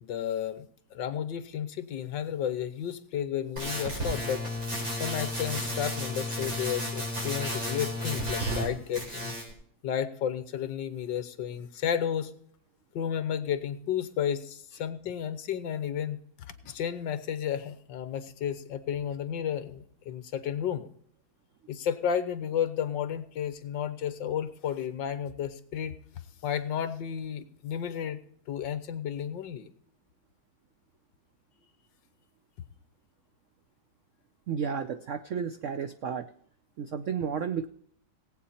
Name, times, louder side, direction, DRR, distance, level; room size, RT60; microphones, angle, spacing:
voice 1, 0.0-4.4 4.9-9.4 9.8-12.3 12.9-20.9 21.7-26.0 26.4-28.2 28.5-29.7, left 9 dB, 70° left, 12 dB, 1.6 m, -32 dB
sound 1, 3.6-8.7 8.9-9.5, equal, 45° right, 4.9 m, -33 dB
voice 2, 34.5-36.3 36.8-37.7, right 7 dB, 85° right, 9 dB, 0.6 m, -32 dB
18.5 x 8.5 x 4.3 m, 0.63 s
omnidirectional pair, 2.1 m